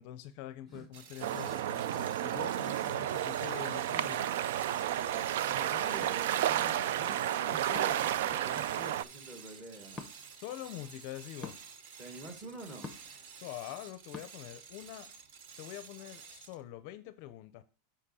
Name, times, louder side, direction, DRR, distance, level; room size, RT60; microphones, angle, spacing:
voice 1, 0.0-4.3 10.3-11.5 13.4-15.1 15.6-17.6, left 13 dB, 45° left, 0.5 m, -45 dB
sound 1, 0.9-16.7, right 6 dB, 55° right, 0.8 m, -51 dB
sound 2, 1.2-9.0, right 11 dB, 70° right, 0.3 m, -32 dB
voice 2, 4.5-10.0 12.0-12.9, right 2 dB, 15° right, 1.5 m, -47 dB
sound 3, 6.0-6.2 7.7-8.1 9.9-10.1 11.4-11.6 12.8-13.2 14.1-14.3, left 3 dB, 10° left, 0.8 m, -44 dB
7.7 x 5.1 x 4.2 m
supercardioid pair, 170°, 0 cm